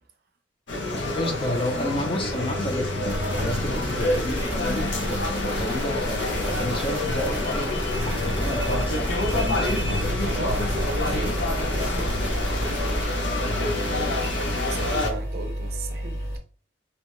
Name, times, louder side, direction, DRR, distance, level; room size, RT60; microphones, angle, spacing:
sound 1, 0.7-15.1, left 2 dB, 90° left, 0.7 m, -27 dB
voice 1, 1.2-10.0, left 1 dB, 30° left, 4 dB, 0.5 m, -31 dB
sound 2, 3.0-13.0, equal, 10° right, 0.7 m, -32 dB
sound 3, 8.3-16.4, equal, 55° left, 0.9 m, -31 dB
voice 2, 9.9-16.2, right 3 dB, 55° right, 7 dB, 0.5 m, -38 dB
2.7 x 2.1 x 3.1 m, 0.41 s
head